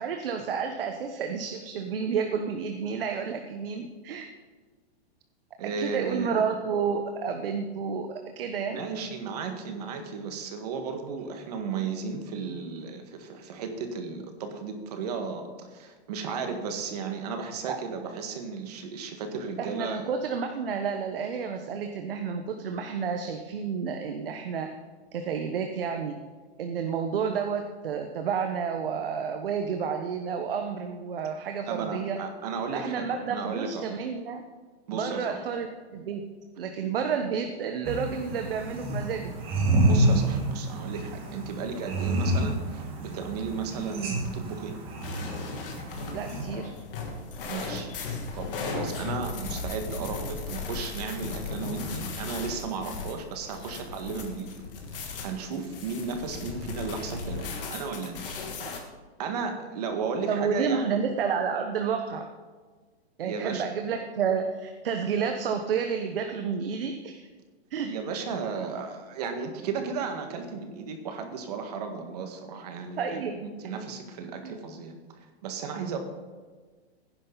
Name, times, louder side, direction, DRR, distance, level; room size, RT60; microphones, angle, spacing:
voice 1, 0.0-4.3 5.6-8.8 17.7-17.8 19.6-24.7 25.1-26.2 26.6-32.2 32.7-34.4 34.9-35.7 35.9-36.2 36.6-39.4 46.1-46.7 60.3-62.3 63.2-67.3 67.7-67.9 73.0-73.4 74.4-74.6, right 6 dB, 55° right, 5 dB, 1.2 m, -30 dB
voice 2, 5.6-6.6 8.7-20.1 31.7-33.9 34.9-35.5 39.8-44.8 47.5-47.9 48.3-54.5 54.9-58.8 59.2-61.0 63.2-63.7 67.8-75.0 75.4-76.0, right 5 dB, 35° right, 5 dB, 1.9 m, -34 dB
sound 1, 37.8-46.4, right 1 dB, 15° right, 1.5 m, -28 dB
sound 2, 45.0-58.8, left 4 dB, 55° left, 2.7 m, -36 dB
17.0 x 10.5 x 4.1 m, 1.4 s
hypercardioid pair, 175°, 33 cm